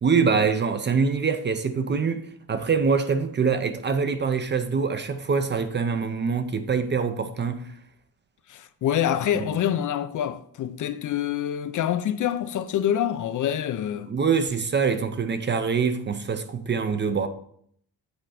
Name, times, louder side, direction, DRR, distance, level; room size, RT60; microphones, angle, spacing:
voice 1, 0.0-7.7 9.3-9.6 14.1-17.3, right 5 dB, 30° right, 0.4 m, -24 dB
voice 2, 8.5-14.1, left 10 dB, 55° left, 0.4 m, -26 dB
8.0 x 4.3 x 4.8 m
wide cardioid pair, 170°, 38 cm